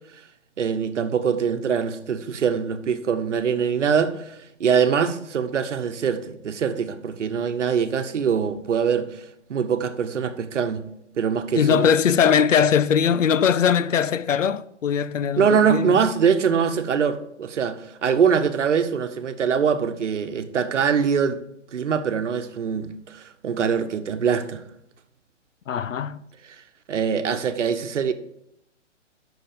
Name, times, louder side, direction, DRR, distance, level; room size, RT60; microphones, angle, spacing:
voice 1, 0.6-9.2 9.5-10.8 11.2-11.9 15.4-21.4 21.7-24.6 26.9-28.1, right 7 dB, 70° right, 1.0 m, -23 dB
voice 2, 11.6-16.0 25.7-26.2, left 7 dB, 90° left, 0.6 m, -20 dB
7.6 x 6.1 x 5.1 m
hypercardioid pair, 140°, 37 cm